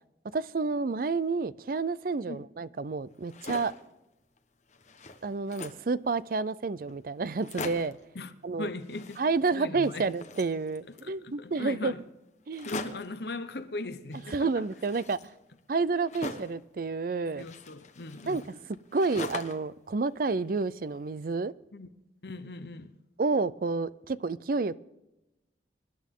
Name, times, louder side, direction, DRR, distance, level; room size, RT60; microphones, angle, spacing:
voice 1, 0.3-3.7 5.2-8.0 8.4-8.7 9.2-11.9 12.5-12.7 14.3-15.2 15.7-17.5 18.3-18.6 18.9-21.5 23.2-24.8, right 4 dB, 50° right, 0.4 m, -29 dB
sound 1, 3.1-3.9 4.4-4.5 4.7-5.9 6.6-6.7 6.9-7.0 7.3-8.0 8.8-9.6 9.8-11.1 12.5-13.2 14.1-16.6 17.4-19.7 20.1-21.0, left 3 dB, 40° left, 1.1 m, -42 dB
voice 2, 8.6-9.2 9.5-10.1 11.0-12.0 12.6-14.7 17.4-18.4 21.7-21.9 22.2-22.9, left 2 dB, 60° left, 0.9 m, -39 dB
24.5 x 11.0 x 3.7 m
head